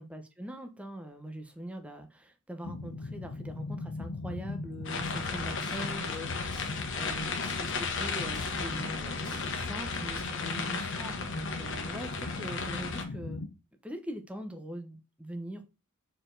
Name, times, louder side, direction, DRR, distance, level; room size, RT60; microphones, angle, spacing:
voice 1, 0.0-13.4 13.8-15.6, equal, 5° right, 0.8 m, -42 dB
sound 1, 2.6-13.5, left 3 dB, 80° left, 0.7 m, -39 dB
sound 2, 4.8-13.0, left 4 dB, 60° left, 1.4 m, -35 dB
sound 3, 4.9-10.2, left 1 dB, 20° left, 1.5 m, -46 dB
6.9 x 4.5 x 3.9 m
head